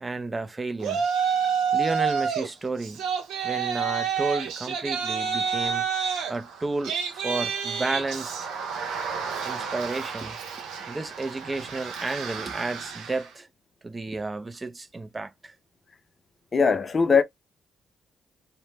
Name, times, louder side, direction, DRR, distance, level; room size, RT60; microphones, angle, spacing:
voice 1, 0.0-1.1 1.7-3.0 3.4-5.9 6.3-8.5 9.4-10.4 10.9-13.5 13.8-15.5, right 3 dB, 25° right, 0.5 m, -32 dB
Yell, 0.8-2.5 2.8-13.3, right 6 dB, 85° right, 0.7 m, -29 dB
voice 2, 16.5-17.2, left 5 dB, 40° left, 0.5 m, -20 dB
2.1 x 2.1 x 3.2 m
supercardioid pair, 70°, 0 cm